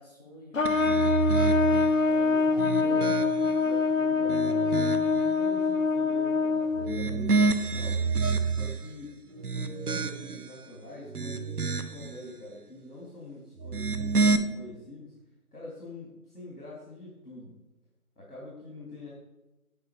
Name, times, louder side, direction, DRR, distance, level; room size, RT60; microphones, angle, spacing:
voice 1, 0.0-1.8 2.5-3.2 9.3-9.7, left 1 dB, 25° left, -2 dB, 1.3 m, -50 dB
Trumpet, 0.5-7.1, left 4 dB, 60° left, 0.9 m, -25 dB
sound 1, 0.7-2.0 2.5-3.6 4.1-5.2 6.7-8.9 9.4-10.5 11.0-12.1 13.6-14.4, right 4 dB, 85° right, 1.1 m, -28 dB
voice 2, 2.0-3.1 3.4-8.1 8.5-9.2 9.5-15.1 15.5-17.5 18.1-19.1, left 2 dB, 80° left, -4 dB, 3.4 m, -45 dB
9.3 x 8.2 x 5.0 m, 0.99 s
figure-of-eight pair, 165°, 44 cm